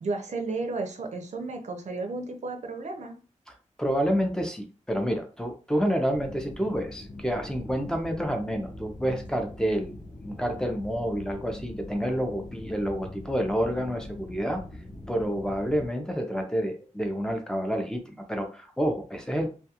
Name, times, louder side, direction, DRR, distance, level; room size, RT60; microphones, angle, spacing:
voice 1, 0.0-3.2, right 3 dB, 65° right, 4 dB, 0.5 m, -33 dB
voice 2, 3.8-9.9 10.2-14.6 15.1-19.5, equal, 5° left, 4 dB, 0.5 m, -28 dB
sound 1, 6.1-15.9, left 2 dB, 90° left, 0.7 m, -42 dB
2.3 x 2.2 x 2.8 m, 0.36 s
wide cardioid pair, 105°, 13 cm